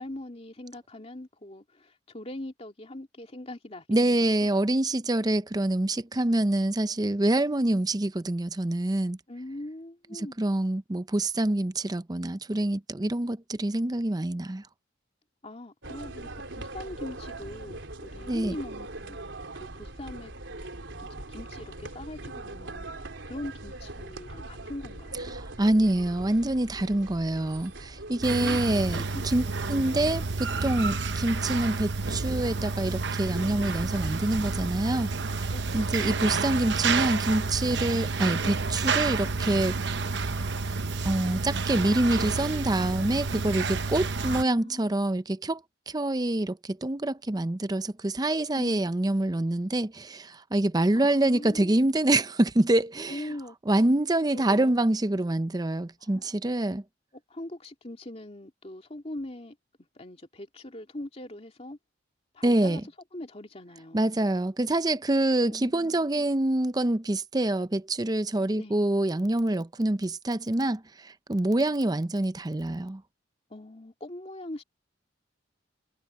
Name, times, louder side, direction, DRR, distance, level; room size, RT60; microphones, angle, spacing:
voice 1, 0.0-4.4 9.3-10.4 15.4-19.2 19.6-20.3 21.0-25.3 28.3-28.6 28.9-29.7 30.0-30.1 35.5-36.4 44.2-45.0 48.5-48.9 50.9-51.8 53.1-53.6 54.3-54.7 56.0-56.3 57.3-59.6 59.9-61.8 62.3-62.8 63.1-64.2 65.5-66.3 68.5-68.9 73.5-74.6, left 1 dB, 35° left, 2.6 m, -42 dB
voice 2, 3.9-9.2 10.2-14.6 18.3-18.5 25.6-35.1 35.7-39.8 41.0-45.6 45.9-53.2 53.7-56.8 62.4-62.8 63.9-73.0, right 1 dB, 20° right, 0.6 m, -26 dB
sound 1, 15.8-31.0, right 2 dB, 85° right, 3.5 m, -41 dB
sound 2, 28.2-44.4, right 4 dB, 65° right, 0.9 m, -30 dB
head